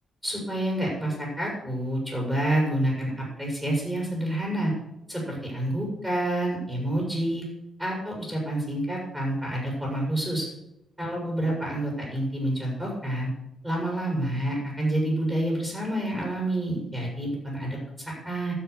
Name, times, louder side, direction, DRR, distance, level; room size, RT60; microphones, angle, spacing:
voice 1, 0.2-4.7 5.1-7.4 7.8-10.5 11.0-13.3 13.6-18.5, right 1 dB, ahead, -3 dB, 6.4 m, -28 dB
12.5 x 6.9 x 8.3 m, 0.87 s
cardioid pair, 110°, 0 cm